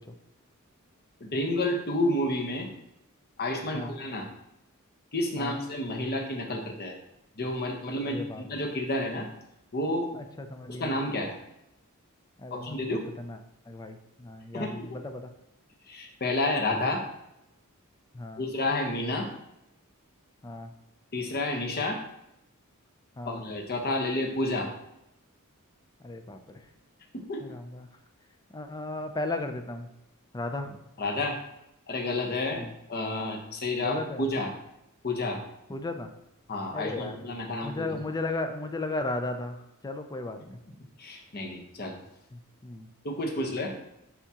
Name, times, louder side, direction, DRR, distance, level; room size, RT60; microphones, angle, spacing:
voice 1, 1.2-2.7 3.4-4.3 5.1-7.0 7.4-9.3 9.7-10.1 10.7-11.3 12.5-13.1 14.5-15.0 15.9-17.0 18.4-19.3 21.1-22.0 23.3-24.7 27.1-27.4 31.0-31.4 31.9-34.5 35.0-35.4 36.5-37.9 41.0-42.0 43.0-43.7, left 2 dB, 45° left, 2 dB, 1.0 m, -30 dB
voice 2, 8.1-8.6 10.1-10.9 12.4-12.8 13.2-13.4 13.7-15.3 18.1-18.4 20.4-20.7 23.2-23.4 26.0-26.6 27.4-27.9 28.5-29.9 30.3-30.8 32.6-32.7 33.8-34.2 35.7-36.1 36.7-37.2 37.6-39.6 39.8-40.6 42.3-42.9, left 2 dB, 20° left, 6 dB, 0.5 m, -35 dB
9.9 x 3.6 x 2.9 m, 0.84 s
head